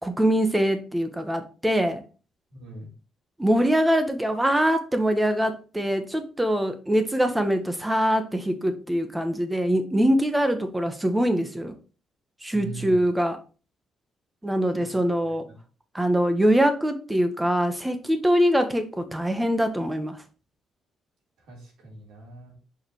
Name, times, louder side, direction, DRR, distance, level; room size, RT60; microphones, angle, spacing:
voice 1, 0.0-2.0 3.4-11.7 12.4-13.4 14.4-15.5 15.9-20.2, equal, 10° right, 1.2 m, -23 dB
voice 2, 2.5-2.9 12.5-13.1 14.8-15.5 21.5-22.5, right 2 dB, 80° right, 3.8 m, -42 dB
6.3 x 5.0 x 3.0 m
cardioid pair, 90°, 0 cm